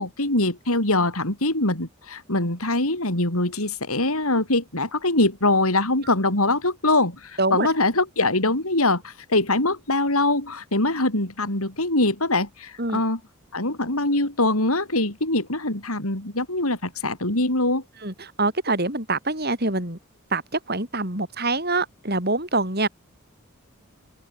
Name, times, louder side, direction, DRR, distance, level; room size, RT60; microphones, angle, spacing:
voice 1, 0.0-13.2 13.5-17.8, left 2 dB, 80° left, 6.6 m, -23 dB
voice 2, 18.0-20.0 20.3-22.9, right 2 dB, 45° right, 6.5 m, -25 dB
open air
head